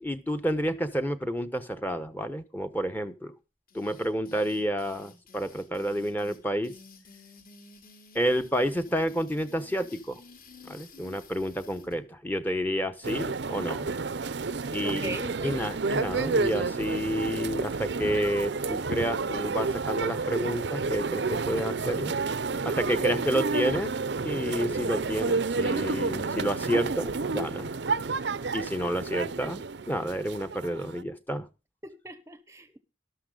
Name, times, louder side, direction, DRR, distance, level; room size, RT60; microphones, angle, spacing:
voice 1, 0.0-3.3 3.7-6.7 8.1-10.2 10.7-13.9 14.7-15.1 15.4-22.1 22.6-23.9 24.2-27.7 28.5-31.5, equal, 10° left, 1.0 m, -30 dB
sound 1, 3.7-12.0, left 3 dB, 45° left, 3.5 m, -53 dB
sound 2, 13.0-31.0, right 4 dB, 60° right, 0.6 m, -30 dB
voice 2, 14.8-15.6 31.8-32.8, right 1 dB, 15° right, 0.8 m, -39 dB
13.0 x 12.5 x 3.9 m
head